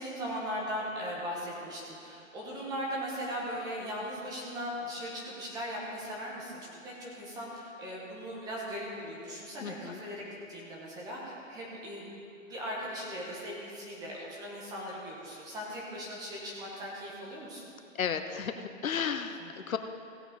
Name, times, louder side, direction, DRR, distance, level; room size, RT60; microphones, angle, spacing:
voice 1, 0.0-12.2 12.4-17.6 19.4-19.5, equal, 10° right, -4 dB, 1.4 m, -38 dB
voice 2, 9.6-10.0 18.0-19.8, left 7 dB, 85° left, 8 dB, 0.9 m, -33 dB
16.5 x 8.1 x 4.0 m, 2.7 s
hypercardioid pair, 160°, 40 cm